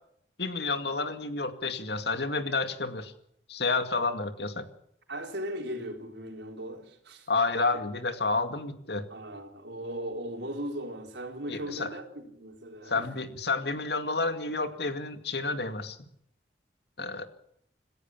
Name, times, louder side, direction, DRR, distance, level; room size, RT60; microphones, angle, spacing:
voice 1, 0.4-3.1 3.5-4.6 7.3-9.0 11.5-11.9 12.9-16.0 17.0-17.3, left 3 dB, 65° left, 2.2 m, -30 dB
voice 2, 5.1-7.3 9.1-13.1, equal, 75° right, 4.2 m, -38 dB
27.0 x 15.0 x 7.4 m
head